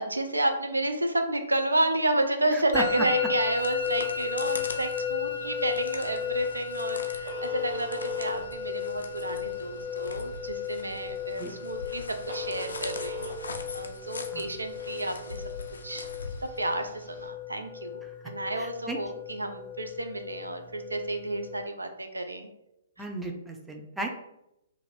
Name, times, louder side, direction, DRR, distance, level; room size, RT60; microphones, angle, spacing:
voice 1, 0.0-15.4 15.8-16.1 16.6-22.5 23.0-23.1, right 1 dB, 85° right, 6 dB, 0.4 m, -31 dB
voice 2, 2.5-3.0 11.4-11.6 14.3-14.5 18.6-19.0 23.0-24.1, right 2 dB, 5° right, 1 dB, 0.4 m, -35 dB
Musical instrument, 2.7-21.6, left 8 dB, 25° right, 0.9 m, -35 dB
sound 1, 3.2-17.0, left 3 dB, 70° left, 0.4 m, -43 dB
Telephone, 4.8-17.3, right 2 dB, 65° right, 0.8 m, -45 dB
2.5 x 2.5 x 3.1 m, 0.84 s
figure-of-eight pair, 120°, 0 cm